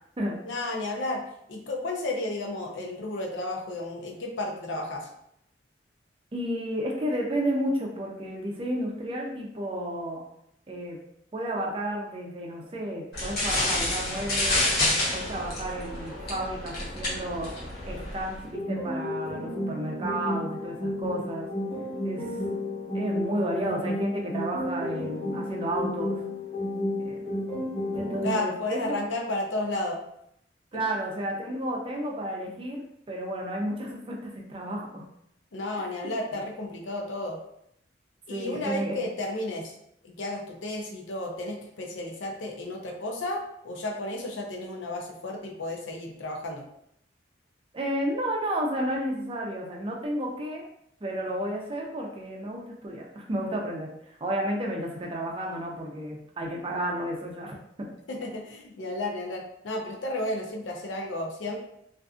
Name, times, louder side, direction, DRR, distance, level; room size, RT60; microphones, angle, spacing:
voice 1, 0.5-1.2 1.5-5.1 28.2-30.0 35.5-37.4 38.3-39.7 40.0-43.4 43.6-46.6 58.1-61.6, left 2 dB, 85° left, 1 dB, 0.5 m, -32 dB
voice 2, 6.3-10.2 10.7-11.0 11.3-14.7 15.1-17.5 17.9-21.5 22.0-22.3 22.9-26.2 27.0-27.4 27.9-29.0 30.7-35.0 36.0-36.4 38.3-39.0 47.7-50.6 51.0-57.9, right 1 dB, 30° right, -1 dB, 0.4 m, -32 dB
sound 1, 13.1-18.4, left 1 dB, 55° left, 0.9 m, -29 dB
sound 2, 18.5-28.5, left 1 dB, 5° right, 0.9 m, -32 dB
2.5 x 2.4 x 2.4 m, 0.75 s
head